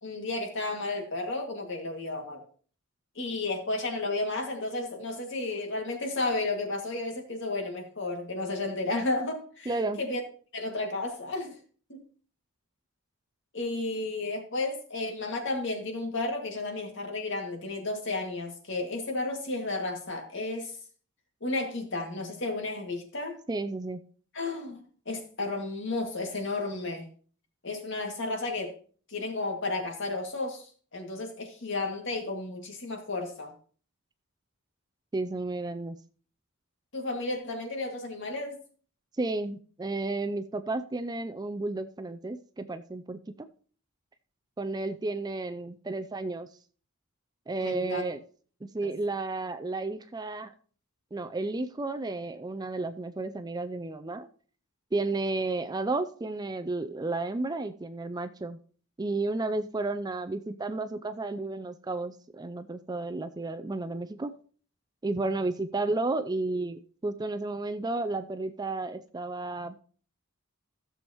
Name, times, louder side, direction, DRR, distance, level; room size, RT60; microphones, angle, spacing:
voice 1, 0.0-2.4 3.2-10.2 10.5-11.6 11.9-12.0 13.5-20.7 21.4-23.4 24.3-27.1 27.6-28.8 29.1-30.7 30.9-33.5 36.9-38.6 47.6-48.0 48.8-48.9, left 2 dB, 60° left, 2.2 m, -33 dB
voice 2, 9.7-10.0 23.5-24.0 35.1-36.0 39.2-43.5 44.6-46.5 47.5-48.2 48.6-50.5 51.1-54.3 54.9-58.6 59.0-64.3 65.0-69.8, right 2 dB, 20° right, 0.4 m, -32 dB
15.5 x 7.1 x 3.0 m
head